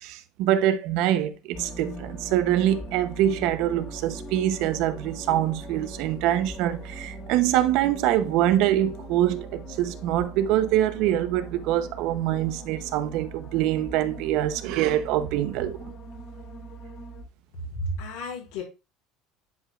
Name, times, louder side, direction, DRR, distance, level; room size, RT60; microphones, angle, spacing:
voice 1, 0.0-15.9, right 12 dB, 65° right, 0.8 m, -24 dB
sound 1, 1.5-17.2, right 2 dB, 35° left, 1.3 m, -40 dB
voice 2, 17.6-18.6, equal, 85° left, 3.9 m, -32 dB
10.5 x 5.1 x 2.4 m
cardioid pair, 130°, 0 cm